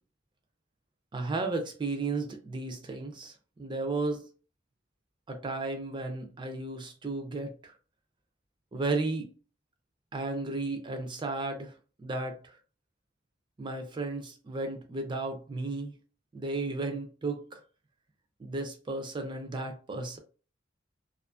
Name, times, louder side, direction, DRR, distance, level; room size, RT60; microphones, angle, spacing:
voice 1, 1.1-4.2 5.3-7.7 8.7-9.3 10.1-12.6 13.6-15.9 16.3-17.6 18.4-20.2, right 3 dB, 25° right, 0.4 m, -34 dB
2.4 x 2.4 x 2.3 m
head